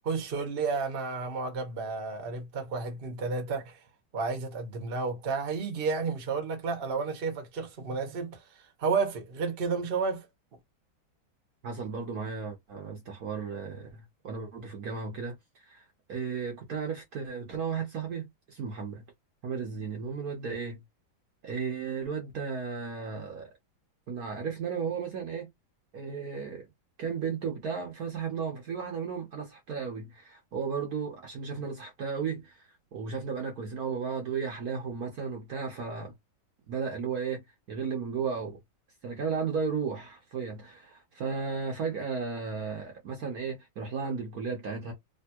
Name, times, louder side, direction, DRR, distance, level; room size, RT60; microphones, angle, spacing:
voice 1, 0.0-3.8 4.1-10.3, right 4 dB, 35° right, 1.0 m, -31 dB
voice 2, 11.6-15.3 15.7-19.0 19.4-20.8 21.4-23.5 24.1-25.5 25.9-26.7 27.0-36.1 36.7-37.4 37.7-38.6 39.0-44.9, right 5 dB, 55° right, 1.2 m, -34 dB
3.3 x 2.7 x 2.9 m
omnidirectional pair, 2.1 m